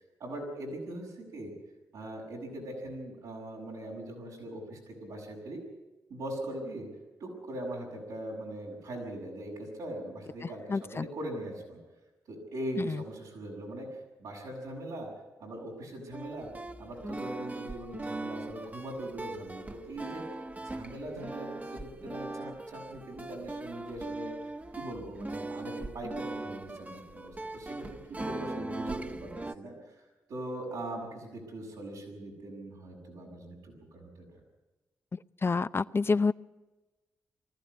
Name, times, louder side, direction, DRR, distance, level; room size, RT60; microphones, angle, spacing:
voice 1, 0.2-1.5 1.9-5.6 6.1-6.9 7.2-11.8 12.3-13.9 14.2-15.1 15.4-16.5 16.8-20.2 20.6-34.2, right 1 dB, 85° right, -2 dB, 6.4 m, -41 dB
voice 2, 10.7-11.1 12.8-13.0 35.4-36.3, left 4 dB, 40° left, 14 dB, 0.6 m, -27 dB
sound 1, 16.1-29.5, right 2 dB, 25° right, 1.2 m, -40 dB
20.0 x 14.5 x 9.7 m, 1.2 s
supercardioid pair, 45°, 6 cm